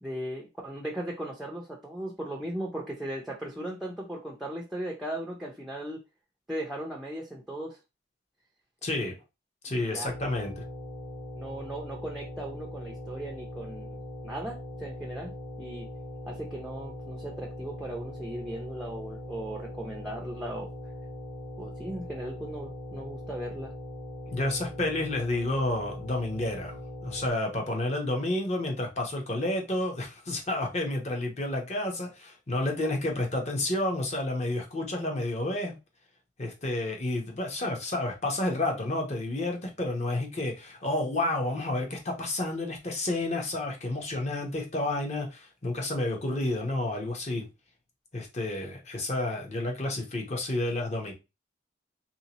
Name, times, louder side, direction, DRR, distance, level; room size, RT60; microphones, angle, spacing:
voice 1, 0.0-6.0 6.5-7.8 9.8-10.3 11.3-14.0 14.2-15.9 16.3-20.7 21.6-23.7, right 1 dB, ahead, 0.5 m, -37 dB
voice 2, 8.8-9.1 9.6-10.6 24.3-35.7 36.4-47.5 48.1-51.1, left 2 dB, 35° left, 0.9 m, -30 dB
sound 1, 10.1-27.3, equal, 80° left, 1.4 m, -41 dB
3.3 x 2.8 x 2.9 m
head